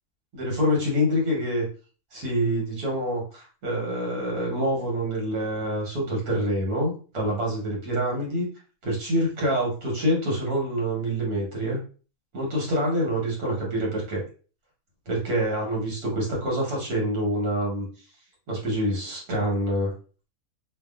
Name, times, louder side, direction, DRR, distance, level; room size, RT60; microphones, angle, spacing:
voice 1, 0.3-1.7 2.1-8.5 8.8-11.8 12.3-14.2 15.1-17.8 18.5-19.9, equal, 85° right, -2 dB, 1.6 m, -26 dB
2.8 x 2.4 x 2.3 m, 0.38 s
omnidirectional pair, 1.5 m